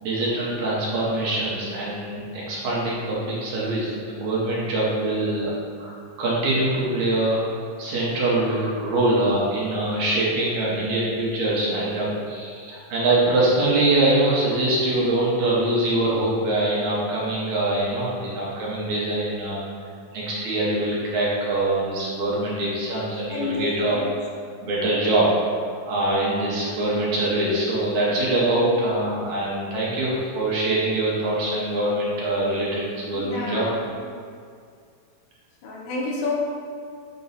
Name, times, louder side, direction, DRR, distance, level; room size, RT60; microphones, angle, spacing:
voice 1, 0.0-5.5 5.8-19.6 20.1-24.0 24.6-25.3 25.9-33.7, right 1 dB, 65° right, -6 dB, 2.3 m, -23 dB
voice 2, 23.1-24.3 32.2-32.4 33.1-34.0 35.6-36.3, left 3 dB, 90° left, -3 dB, 2.7 m, -31 dB
7.3 x 6.1 x 2.7 m, 2.1 s
omnidirectional pair, 3.9 m